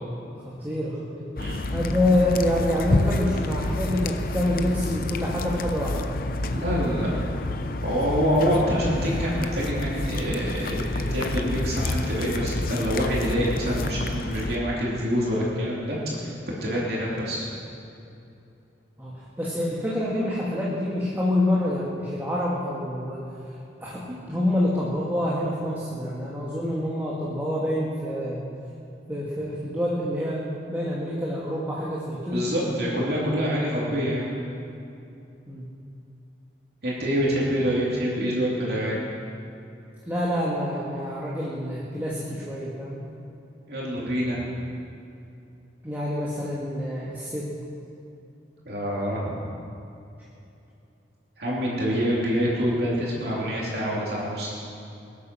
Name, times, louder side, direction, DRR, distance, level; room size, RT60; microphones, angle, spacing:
voice 1, 0.4-1.3 1.7-6.3 19.0-23.2 23.8-28.4 29.1-30.4 30.7-32.4 35.5-35.7 40.1-43.0 45.8-47.5, left 1 dB, 10° right, -7 dB, 1.8 m, -27 dB
sound 1, 1.4-14.6, left 2 dB, 50° left, 0.7 m, -29 dB
voice 2, 6.5-7.1 7.8-16.3 16.6-17.5 32.3-34.3 36.8-39.0 43.7-44.4 48.6-49.4 51.4-54.6, equal, 55° right, -5 dB, 3.1 m, -26 dB
21.5 x 8.7 x 6.1 m, 2.7 s
head